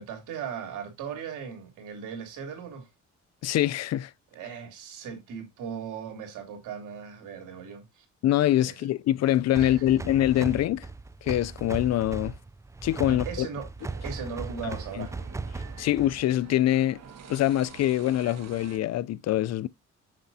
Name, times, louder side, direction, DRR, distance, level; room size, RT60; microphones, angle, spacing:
voice 1, 0.0-2.9 4.3-8.0 8.6-8.8 9.5-9.8 13.0-13.7 14.0-15.1, right 7 dB, 85° right, 3.2 m, -38 dB
voice 2, 3.4-4.1 8.2-10.9 11.2-12.3 12.8-13.5 15.0-15.1 15.8-17.0 17.3-19.7, left 13 dB, 60° left, 0.4 m, -24 dB
sound 1, 9.5-16.3, right 3 dB, 10° right, 0.4 m, -37 dB
sound 2, 13.8-18.8, right 7 dB, 60° right, 1.6 m, -48 dB
7.4 x 6.8 x 2.7 m
cardioid pair, 90°, 30 cm